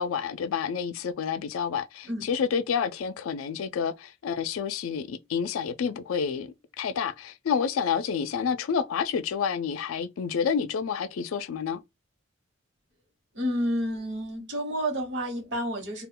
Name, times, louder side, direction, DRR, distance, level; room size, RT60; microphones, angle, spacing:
voice 1, 0.0-11.8, left 6 dB, 80° left, 0.4 m, -29 dB
voice 2, 13.3-16.1, equal, 60° right, 1.0 m, -30 dB
2.3 x 2.1 x 3.6 m
head